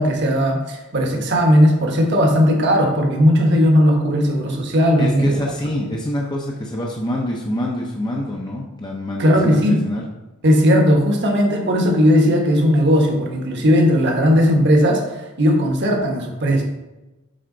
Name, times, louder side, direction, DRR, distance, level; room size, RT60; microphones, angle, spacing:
voice 1, 0.0-5.4 9.2-9.8 10.4-16.6, equal, 55° right, 1 dB, 1.3 m, -17 dB
voice 2, 5.0-10.0, left 1 dB, 20° left, -2 dB, 0.7 m, -26 dB
7.8 x 4.4 x 3.9 m, 1.1 s
head